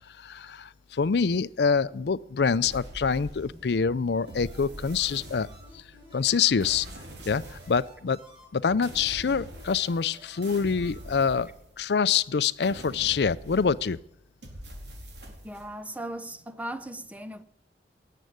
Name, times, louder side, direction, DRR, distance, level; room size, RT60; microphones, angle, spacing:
voice 1, 0.2-5.5 5.7-5.8 6.1-6.9 7.3-8.2 8.5-11.5 11.8-14.0, left 6 dB, 70° left, 0.5 m, -26 dB
sound 1, 2.6-3.7 4.3-5.9 6.6-7.9 8.8-10.1 10.4-12.0 12.6-14.0 14.4-15.7, equal, 80° right, 4.0 m, -44 dB
sound 2, 3.3-11.1, equal, 30° right, 6.3 m, -52 dB
voice 2, 15.4-17.4, right 1 dB, 10° right, 0.7 m, -37 dB
18.5 x 7.6 x 9.5 m
head